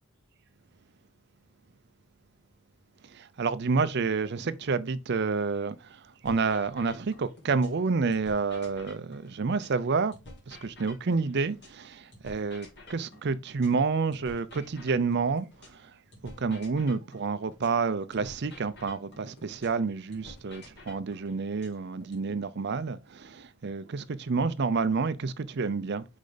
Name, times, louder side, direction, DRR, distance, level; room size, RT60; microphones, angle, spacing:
voice 1, 3.0-10.1 10.5-15.5 15.7-15.9 16.2-26.1, right 4 dB, 50° right, 0.5 m, -29 dB
sound 1, 6.2-7.8 8.1-11.8 12.1-15.8 16.1-19.8 20.1-22.2, left 2 dB, 50° left, 2.8 m, -50 dB
5.2 x 5.0 x 3.8 m
head